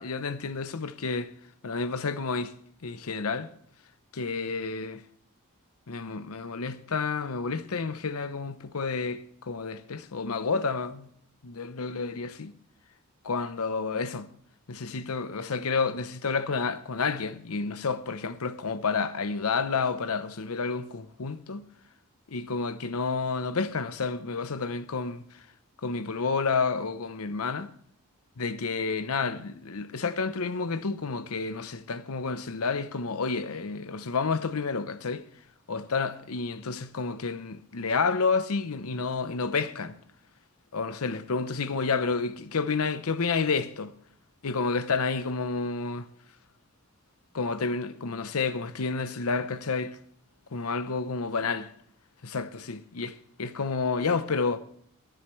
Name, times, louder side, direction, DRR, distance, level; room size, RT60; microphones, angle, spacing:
voice 1, 0.0-1.3 1.6-2.5 2.8-3.5 4.1-5.0 5.9-11.1 11.4-12.5 13.2-14.3 14.7-21.6 22.3-25.5 25.8-27.7 28.4-35.2 35.7-40.0 40.7-43.9 44.4-46.1 47.3-50.0 50.5-51.6 52.2-54.6, left 4 dB, 85° left, 0.7 m, -30 dB
23.5 x 7.9 x 3.1 m
head